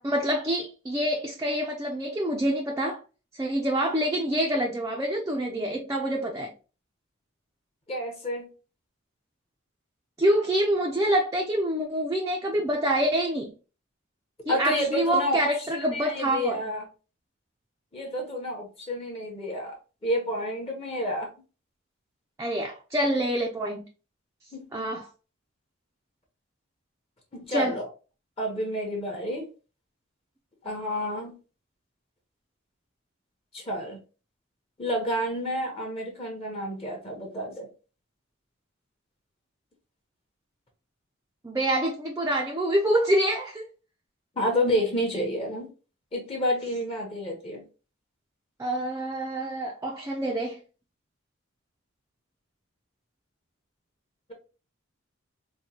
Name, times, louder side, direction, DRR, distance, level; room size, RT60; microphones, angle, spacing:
voice 1, 0.0-3.0 3.3-6.5 10.2-13.5 14.5-16.6 22.4-23.9 24.7-25.1 27.5-27.8 41.4-43.7 48.6-50.6, right 1 dB, 15° right, 0.4 m, -26 dB
voice 2, 7.9-8.5 14.5-16.8 17.9-19.7 20.0-21.3 24.5-24.6 27.3-27.9 28.4-29.5 30.6-31.3 33.5-34.0 34.8-37.7 44.4-45.7 46.1-47.6, equal, 30° left, 0.9 m, -29 dB
4.3 x 2.2 x 2.8 m
head